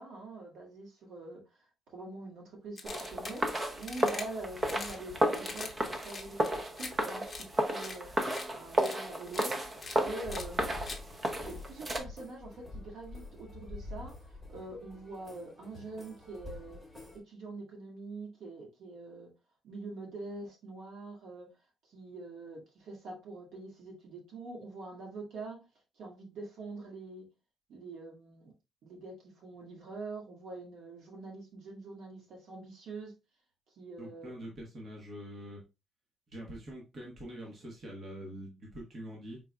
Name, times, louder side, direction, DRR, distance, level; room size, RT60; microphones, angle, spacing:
voice 1, 0.0-1.4 1.9-8.1 8.5-9.6 10.0-10.9 11.4-14.2 14.5-16.8 17.1-19.3 19.6-21.5 21.8-25.6 26.0-27.3 27.7-28.5 28.8-33.1 33.8-34.4, right 3 dB, 80° right, 1.9 m, -44 dB
sound 1, 2.8-3.4 3.8-4.2 4.6-5.0 5.3-5.7 6.0-6.9 7.3-7.4 7.8-8.0 8.3-8.4 8.8-9.0 9.3-9.5 9.8-10.0 10.3-10.4 10.8-11.0, left 3 dB, 20° left, 0.8 m, -42 dB
sound 2, 2.8-12.0, right 1 dB, 25° right, 0.6 m, -33 dB
sound 3, 10.0-17.2, left 2 dB, 10° right, 1.3 m, -47 dB
voice 2, 34.0-35.6 36.3-39.4, equal, 40° right, 1.2 m, -44 dB
4.8 x 3.9 x 2.3 m
cardioid pair, 155°, 0 cm